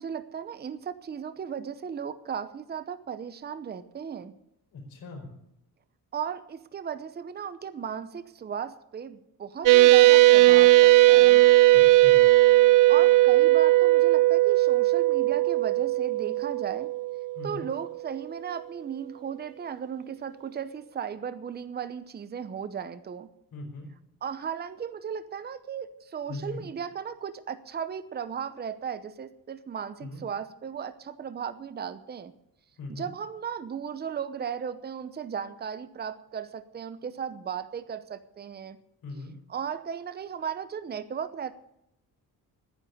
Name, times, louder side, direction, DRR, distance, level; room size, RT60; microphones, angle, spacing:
voice 1, 0.0-4.3 6.1-11.4 12.9-16.9 17.4-23.3 24.2-32.3 32.9-38.8 39.5-41.5, right 7 dB, 25° right, 12 dB, 0.8 m, -36 dB
voice 2, 4.7-5.3 11.7-12.2 17.3-17.7 23.5-23.9 26.3-26.6 30.0-30.3 32.8-33.1 39.0-39.3, left 2 dB, 70° left, 2 dB, 4.7 m, -40 dB
sound 1, 9.7-17.7, right 18 dB, 60° right, 0.5 m, -18 dB
10.0 x 9.5 x 9.5 m, 0.81 s
cardioid pair, 125°, 36 cm